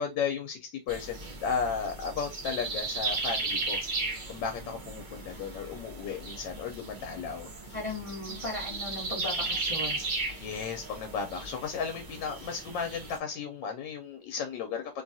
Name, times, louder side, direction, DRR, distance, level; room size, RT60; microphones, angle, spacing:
voice 1, 0.0-3.8 4.3-7.8 10.3-15.0, left 6 dB, 80° left, 1.3 m, -34 dB
sound 1, 0.9-13.2, right 3 dB, 55° right, 0.5 m, -36 dB
voice 2, 7.7-10.1, left 2 dB, 25° left, 0.8 m, -37 dB
3.1 x 2.3 x 2.6 m
omnidirectional pair, 1.9 m